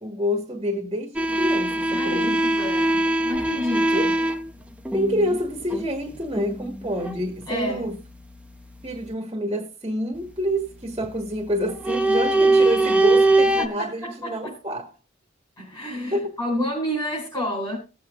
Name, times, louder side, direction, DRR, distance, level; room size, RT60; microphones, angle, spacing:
voice 1, 0.0-2.7 3.9-4.1 4.9-8.0 8.8-14.9 16.1-16.3, equal, 25° right, 1.5 m, -28 dB
sound 1, 1.2-7.3 7.5-9.1 11.0-11.3 11.6-13.7, right 2 dB, 5° right, 0.7 m, -22 dB
voice 2, 1.9-3.0 3.2-4.1 7.5-7.9 13.6-14.5 15.6-17.8, equal, 20° left, 4.3 m, -29 dB
19.0 x 8.0 x 2.5 m
head